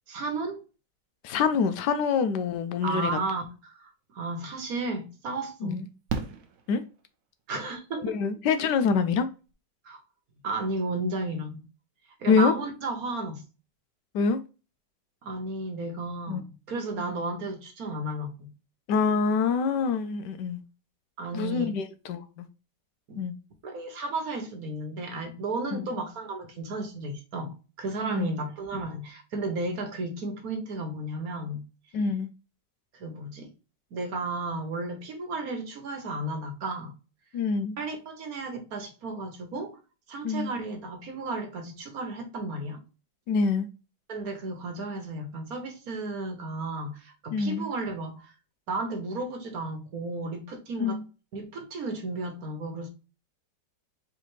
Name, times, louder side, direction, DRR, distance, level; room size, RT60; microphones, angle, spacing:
voice 1, 0.1-0.6 2.8-5.8 7.5-8.2 9.8-10.0 10.4-11.6 12.2-13.4 15.2-18.5 21.2-21.7 23.1-23.2 23.6-31.6 32.9-33.5 33.9-36.9 37.8-39.8 40.1-42.8 44.1-48.3 48.7-51.0 51.3-52.9, right 2 dB, 55° right, 1.4 m, -33 dB
voice 2, 1.2-3.2 5.6-5.9 6.7-6.8 8.0-9.3 12.3-12.5 14.1-14.4 16.3-16.4 18.9-20.6 21.3-22.5 23.2-23.3 25.7-25.8 28.1-28.3 31.9-32.3 37.3-37.8 40.2-40.5 43.3-43.7 47.3-47.7 50.8-51.0, left 5 dB, 75° left, 1.2 m, -25 dB
Fireworks, 4.4-4.5 6.1-7.4 9.2-9.3 9.5-9.6, right 5 dB, 85° right, 1.4 m, -35 dB
4.7 x 3.4 x 3.1 m
omnidirectional pair, 1.9 m